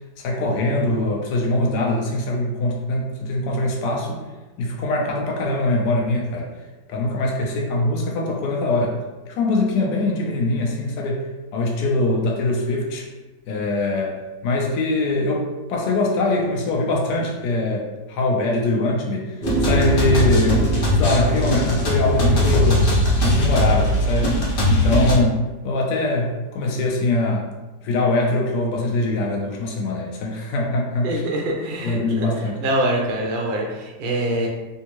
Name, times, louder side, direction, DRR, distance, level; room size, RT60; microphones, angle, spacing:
voice 1, 0.2-4.2 4.6-6.5 6.9-9.0 9.3-11.2 11.5-13.1 13.5-22.8 23.2-24.4 24.7-27.5 27.8-31.2 31.8-32.6, left 2 dB, 80° left, -1 dB, 1.2 m, -22 dB
sound 1, 19.4-25.1, left 1 dB, 50° left, 0.7 m, -19 dB
voice 2, 31.0-32.3 32.6-34.5, right 1 dB, 65° right, -1 dB, 0.5 m, -24 dB
3.4 x 2.6 x 2.9 m, 1.2 s
omnidirectional pair, 1.8 m